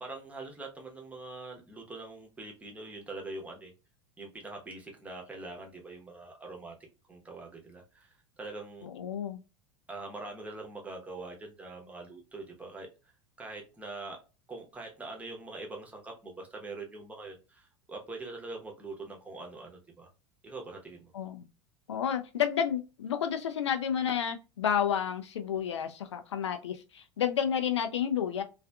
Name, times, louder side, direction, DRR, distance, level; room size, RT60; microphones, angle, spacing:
voice 1, 0.0-3.7 4.2-6.8 7.1-8.9 9.9-12.9 13.4-14.2 14.5-20.1 20.4-21.1, right 3 dB, 10° right, 0.8 m, -43 dB
voice 2, 8.8-9.4 21.1-21.5 21.9-28.4, left 8 dB, 70° left, 0.4 m, -31 dB
3.2 x 2.4 x 2.2 m
figure-of-eight pair, 80°, 15 cm